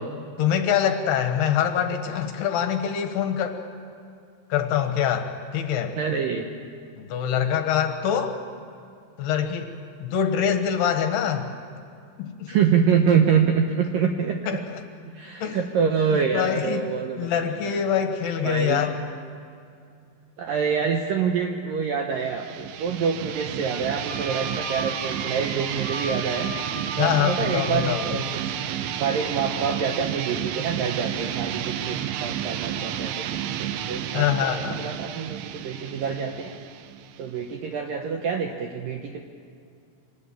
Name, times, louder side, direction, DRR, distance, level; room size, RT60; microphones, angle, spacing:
voice 1, 0.4-3.6 4.5-6.0 7.0-8.4 9.2-9.7 10.0-11.5 12.2-12.6 14.5-14.8 15.4-15.6 16.1-16.9 17.2-19.0 27.0-28.1 34.1-34.9, left 8 dB, 70° left, 6 dB, 3.0 m, -24 dB
voice 2, 6.0-6.5 12.5-14.4 15.2-17.3 18.4-18.8 20.4-26.5 27.0-35.4 35.6-36.5 37.2-39.2, right 6 dB, 70° right, 4 dB, 2.1 m, -26 dB
sound 1, 22.2-37.7, right 10 dB, 90° right, 3.2 m, -31 dB
Wind instrument woodwind instrument, 24.1-28.4, right 1 dB, ahead, 6.5 m, -37 dB
25.0 x 19.5 x 9.1 m, 2.3 s
omnidirectional pair, 5.3 m